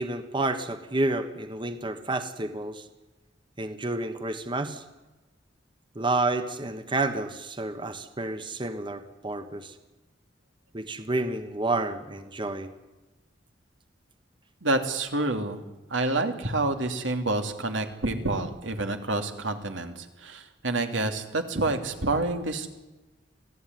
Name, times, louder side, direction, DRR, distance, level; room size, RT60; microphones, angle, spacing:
voice 1, 0.0-2.8 3.6-4.8 5.9-9.7 10.7-12.7, right 2 dB, 25° right, 9 dB, 1.4 m, -30 dB
voice 2, 14.6-15.6 15.9-22.7, right 2 dB, 85° right, 6 dB, 2.9 m, -28 dB
26.5 x 16.5 x 9.6 m, 1.1 s
head